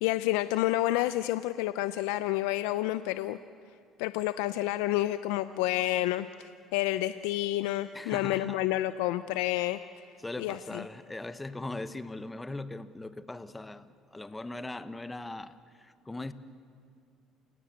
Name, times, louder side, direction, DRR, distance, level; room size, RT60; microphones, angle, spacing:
voice 1, 0.0-3.4 4.0-6.3 6.7-9.8 10.4-10.8, left 16 dB, 90° left, 13 dB, 0.5 m, -29 dB
voice 2, 7.9-8.6 10.2-16.3, left 2 dB, 15° left, 13 dB, 1.1 m, -40 dB
29.0 x 18.0 x 8.1 m, 2.3 s
supercardioid pair, 95°, 0 cm